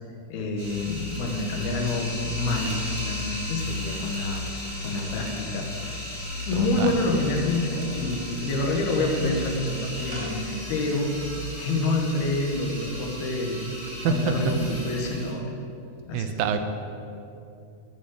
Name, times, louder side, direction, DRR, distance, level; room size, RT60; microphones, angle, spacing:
voice 1, 0.3-4.4 4.8-6.0 6.5-11.1 11.6-13.7 14.0-15.5 16.1-16.4, left 2 dB, 90° left, 1 dB, 3.4 m, -27 dB
sound 1, 0.6-15.3, left 1 dB, 15° right, 2.2 m, -35 dB
voice 2, 6.6-6.9 14.0-14.1 16.1-16.6, right 8 dB, 80° right, 8 dB, 2.5 m, -26 dB
17.0 x 6.7 x 6.3 m, 2.7 s
omnidirectional pair, 4.3 m